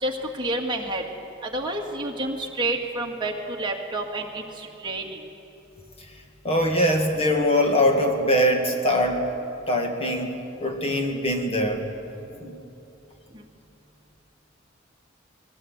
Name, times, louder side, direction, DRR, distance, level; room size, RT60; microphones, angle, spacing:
voice 1, 0.0-1.0 1.5-3.3 3.6-4.4 4.8-5.0, right 2 dB, 25° right, 0 dB, 2.1 m, -28 dB
voice 2, 6.4-9.2 9.7-10.3 10.6-11.9 12.4-12.6, equal, 30° left, 3 dB, 2.1 m, -22 dB
21.5 x 17.0 x 8.1 m, 2.8 s
head